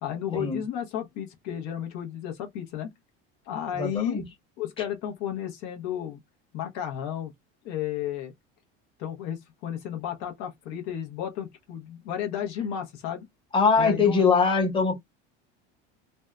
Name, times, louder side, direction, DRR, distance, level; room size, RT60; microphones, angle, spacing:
voice 1, 0.0-2.9 3.5-4.2 4.6-6.2 6.5-7.3 7.6-8.3 9.0-13.3 13.8-14.2, left 9 dB, 65° left, 0.8 m, -33 dB
voice 2, 3.7-4.2 13.5-14.9, left 5 dB, 15° left, 1.0 m, -22 dB
2.6 x 2.1 x 2.2 m
cardioid pair, 135°, 29 cm